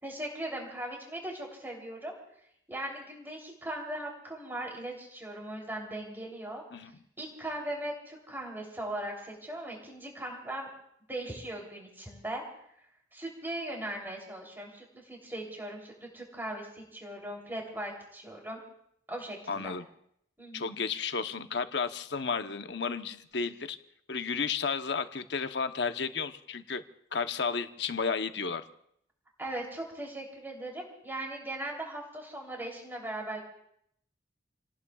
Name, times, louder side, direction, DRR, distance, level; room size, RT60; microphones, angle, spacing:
voice 1, 0.0-2.2 2.7-6.6 7.2-10.7 11.1-12.4 13.1-18.6 19.1-19.7 20.4-20.7 29.4-33.4, right 1 dB, 10° right, -1 dB, 3.2 m, -39 dB
voice 2, 19.5-19.8 20.5-23.8 24.1-26.8 27.1-28.6, left 5 dB, 65° left, 8 dB, 0.9 m, -32 dB
29.5 x 18.5 x 2.4 m, 0.73 s
head